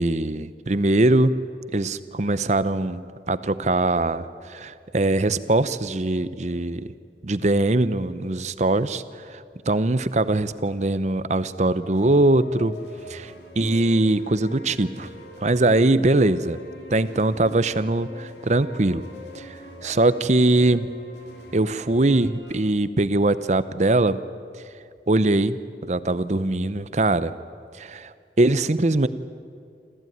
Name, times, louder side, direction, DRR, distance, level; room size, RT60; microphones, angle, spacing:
voice 1, 0.0-1.3 1.7-3.0 3.3-6.8 7.2-9.0 9.3-12.7 13.1-15.1 15.4-16.6 16.9-19.0 19.3-20.9 21.5-24.2 25.1-25.6 25.9-27.3 27.8-29.1, right 2 dB, 40° right, 14 dB, 0.7 m, -22 dB
sound 1, 11.8-22.6, left 1 dB, 75° left, 3.0 m, -44 dB
26.5 x 15.0 x 9.4 m, 2.3 s
head